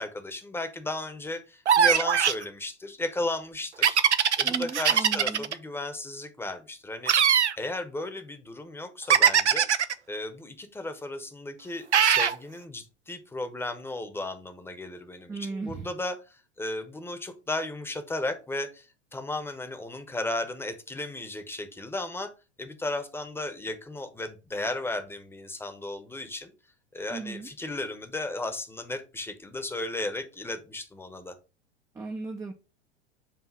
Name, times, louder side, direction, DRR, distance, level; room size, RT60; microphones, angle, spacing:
voice 1, 0.0-4.0 4.4-7.1 7.6-9.7 10.1-22.3 22.6-26.5 26.9-31.3, left 2 dB, 5° left, 7 dB, 0.9 m, -35 dB
sound 1, 1.7-2.4 3.8-5.5 7.1-7.6 9.1-9.9 11.9-12.4, right 8 dB, 80° right, 0.6 m, -21 dB
voice 2, 4.4-5.5 15.3-15.9 27.1-27.5 31.9-32.5, right 4 dB, 10° right, 4 dB, 0.5 m, -36 dB
7.4 x 2.7 x 5.2 m, 0.31 s
figure-of-eight pair, 85°, 34 cm